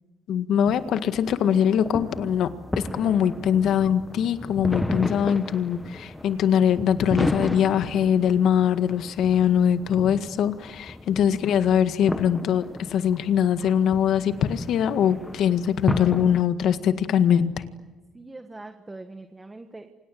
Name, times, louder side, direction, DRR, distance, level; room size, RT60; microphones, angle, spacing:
voice 1, 0.3-17.6, left 9 dB, 60° left, 10 dB, 1.8 m, -22 dB
sound 1, 0.6-16.4, left 1 dB, 10° left, 1.1 m, -33 dB
voice 2, 10.2-10.5 18.1-19.9, right 2 dB, 15° right, 7 dB, 1.5 m, -43 dB
29.5 x 25.5 x 7.8 m, 1.2 s
cardioid pair, 115°, 0 cm